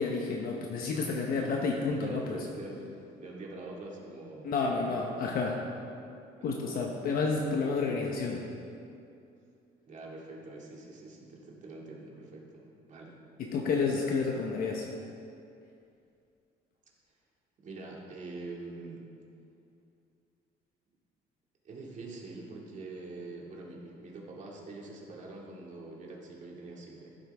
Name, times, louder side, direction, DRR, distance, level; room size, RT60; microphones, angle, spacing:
voice 1, 0.0-2.4 4.4-5.6 6.4-8.4 13.4-14.9, left 4 dB, 60° left, 0 dB, 1.0 m, -30 dB
voice 2, 1.0-1.7 2.0-5.0 6.4-6.5 6.7-6.8 9.8-12.6 12.9-13.2 17.6-19.0 21.6-27.1, right 2 dB, 45° right, -2 dB, 2.2 m, -44 dB
14.5 x 7.9 x 3.5 m, 2.5 s
cardioid pair, 110°, 17 cm